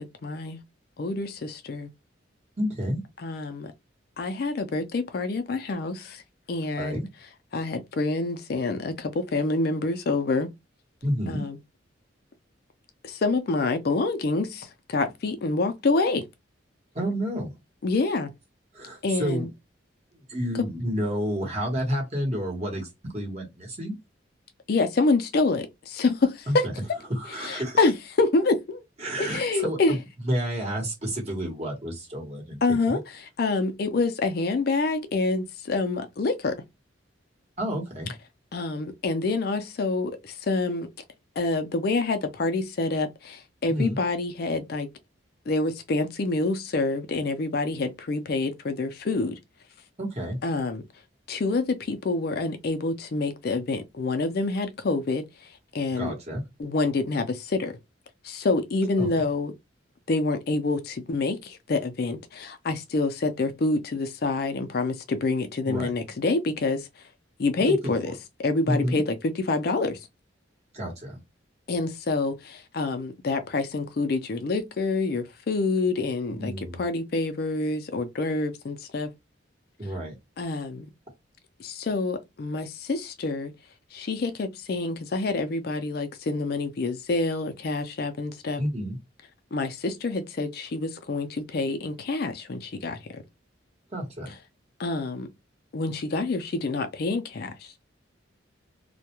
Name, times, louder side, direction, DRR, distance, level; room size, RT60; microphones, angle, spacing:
voice 1, 0.2-0.6 1.0-1.9 3.2-3.7 4.2-6.2 6.5-7.0 7.5-10.5 11.3-11.6 13.0-16.2 17.8-18.3 19.0-19.5 24.7-26.7 27.3-28.8 29.2-30.0 32.6-36.6 38.5-40.9 41.4-44.9 45.5-49.4 50.4-50.8 51.3-55.2 55.7-56.1 56.6-57.7 58.2-59.5 60.1-66.9 67.4-68.1 68.4-70.0 71.7-79.1 80.4-80.9 81.6-83.5 83.9-88.6 89.5-93.2 94.8-95.3 95.7-97.7, left 3 dB, 55° left, 0.4 m, -27 dB
voice 2, 2.6-3.0 6.8-7.0 11.0-11.4 16.9-17.5 18.7-19.5 20.3-22.9 23.1-23.9 26.5-26.7 27.1-27.8 29.0-30.0 30.2-33.0 37.6-38.1 43.7-44.0 50.0-50.4 56.0-56.4 59.0-59.1 65.6-65.9 67.6-67.9 68.7-69.0 70.7-71.2 76.3-76.8 79.8-80.1 88.6-89.0 93.9-94.3, equal, 35° right, 1.0 m, -30 dB
2.2 x 2.1 x 2.9 m
head